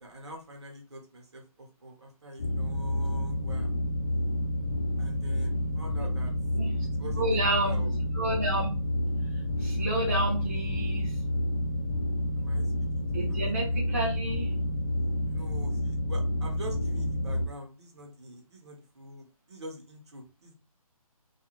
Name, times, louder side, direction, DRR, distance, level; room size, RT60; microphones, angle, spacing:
voice 1, 0.0-3.7 5.0-6.3 7.0-7.9 12.4-13.4 15.2-20.5, right 1 dB, 50° right, 2 dB, 0.9 m, -45 dB
sound 1, 2.4-17.5, left 1 dB, 25° left, 0.7 m, -29 dB
voice 2, 7.2-7.8 8.2-8.7 9.6-11.2 13.1-14.5, right 1 dB, 25° right, -4 dB, 0.4 m, -30 dB
2.5 x 2.3 x 2.9 m, 0.33 s
hypercardioid pair, 170°, 19 cm